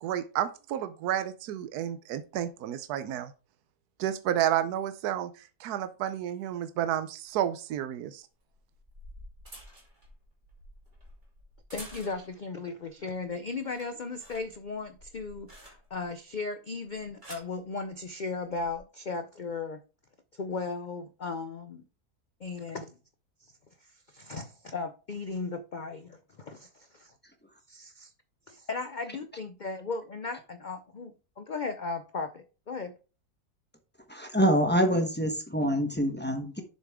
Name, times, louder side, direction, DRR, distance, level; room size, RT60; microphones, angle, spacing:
voice 1, 0.0-3.3 4.0-5.3 5.6-8.2, right 11 dB, 75° right, 11 dB, 1.2 m, -31 dB
sound 1, 7.3-7.4 8.5-12.5 12.9-13.3 13.6-16.1 16.9-17.6 18.5-18.8, equal, 30° right, 2.9 m, -50 dB
voice 2, 11.7-19.8 20.3-21.8 22.4-23.0 23.4-23.5 23.8-27.1 27.7-28.1 28.5-32.9, left 4 dB, 75° left, 9 dB, 0.4 m, -36 dB
voice 3, 34.1-36.6, equal, 10° left, 5 dB, 0.9 m, -26 dB
7.2 x 6.5 x 3.6 m, 0.34 s
omnidirectional pair, 1.7 m